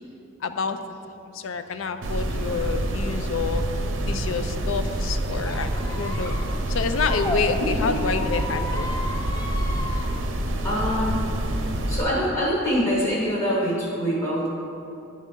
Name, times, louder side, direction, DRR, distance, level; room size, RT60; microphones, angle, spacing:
voice 1, 0.4-0.8 1.3-3.6 4.1-5.7 6.0-6.3 6.7-8.9, left 5 dB, 85° left, 9 dB, 0.4 m, -28 dB
sound 1, 2.0-12.0, right 1 dB, 75° right, 0.6 m, -27 dB
Squeak, 5.4-7.4 8.0-10.1, left 1 dB, 20° left, 0.5 m, -34 dB
voice 2, 7.6-7.9 10.6-11.2 11.5-11.6 11.9-14.5, equal, 40° left, -7 dB, 1.1 m, -25 dB
10.0 x 4.1 x 3.7 m, 2.8 s
head